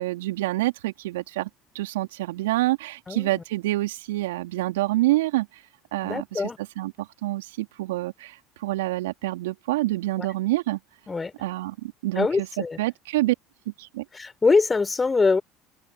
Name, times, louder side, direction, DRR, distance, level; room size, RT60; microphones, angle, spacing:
voice 1, 0.0-1.5 1.7-5.5 5.9-6.4 6.8-8.4 8.6-10.8 11.4-13.3 13.8-14.0, right 18 dB, 75° right, 3.3 m, -27 dB
voice 2, 3.1-3.4 6.0-6.6 10.2-10.3 11.1-11.3 12.2-12.8 14.1-15.4, left 4 dB, 20° left, 4.1 m, -23 dB
open air
hypercardioid pair, 70°, 0 cm